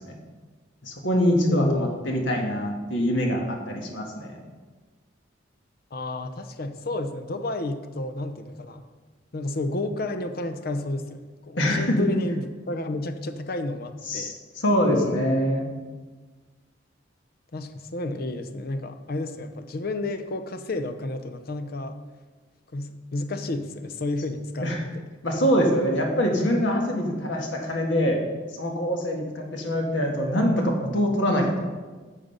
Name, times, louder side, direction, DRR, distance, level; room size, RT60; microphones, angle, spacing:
voice 1, 0.8-4.4 11.6-12.0 14.1-15.7 24.6-24.8 25.2-28.2 28.6-31.6, equal, 80° left, 1 dB, 1.6 m, -24 dB
voice 2, 1.5-2.1 5.9-8.9 9.3-14.4 14.9-15.2 17.5-22.0 22.7-25.0, left 2 dB, 55° left, 9 dB, 0.7 m, -31 dB
8.9 x 6.6 x 5.5 m, 1.4 s
head